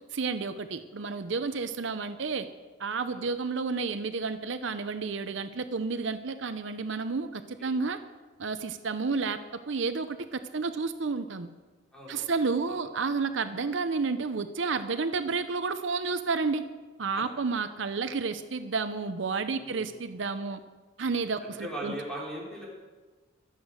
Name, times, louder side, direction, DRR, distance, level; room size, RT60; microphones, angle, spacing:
voice 1, 0.1-2.4 2.8-8.0 8.4-9.4 9.7-11.5 12.1-16.6 17.0-20.6 21.0-21.9, right 4 dB, 65° right, 10 dB, 0.6 m, -31 dB
voice 2, 11.9-12.3 12.7-12.8 17.2-17.3 19.5-19.9 21.4-22.6, right 1 dB, 5° left, -5 dB, 4.8 m, -39 dB
24.0 x 8.1 x 6.5 m, 1.3 s
head